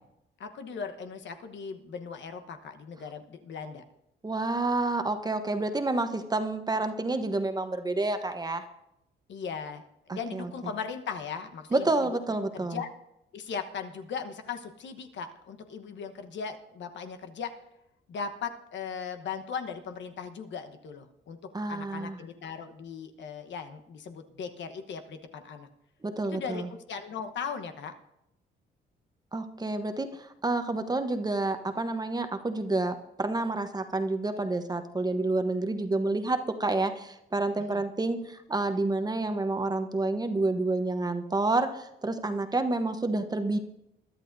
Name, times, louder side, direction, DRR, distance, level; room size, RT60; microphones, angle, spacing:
voice 1, 0.4-3.8 9.3-12.2 12.5-12.9 13.3-17.5 18.1-21.4 21.7-25.7 26.3-27.9 37.6-37.8, left 6 dB, 65° left, 7 dB, 1.2 m, -38 dB
voice 2, 4.2-8.6 10.1-10.2 11.7-12.8 21.5-22.2 26.0-26.7 29.3-30.1 30.4-43.6, right 2 dB, 20° right, 7 dB, 1.0 m, -29 dB
22.0 x 11.5 x 2.7 m, 0.83 s
cardioid pair, 90°, 20 cm